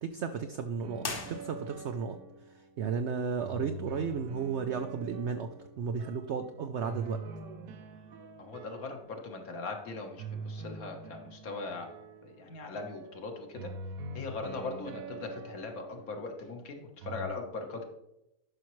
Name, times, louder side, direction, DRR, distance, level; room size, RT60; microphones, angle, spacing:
voice 1, 0.0-2.2 2.8-5.5 5.8-7.2, right 6 dB, 90° right, 8 dB, 0.6 m, -34 dB
sound 1, 0.8-2.8 3.4-6.3 6.8-9.5 10.2-16.5 17.0-17.3, right 2 dB, 70° right, 1.0 m, -45 dB
sound 2, 1.0-2.0, left 3 dB, 40° left, 1.0 m, -39 dB
Human voice, 7.0-8.7, right 4 dB, 50° right, 0.8 m, -52 dB
voice 2, 8.4-11.9 12.2-13.7 14.2-17.8, left 3 dB, 60° left, 3 dB, 1.6 m, -40 dB
11.5 x 5.8 x 3.1 m, 0.88 s
omnidirectional pair, 1.8 m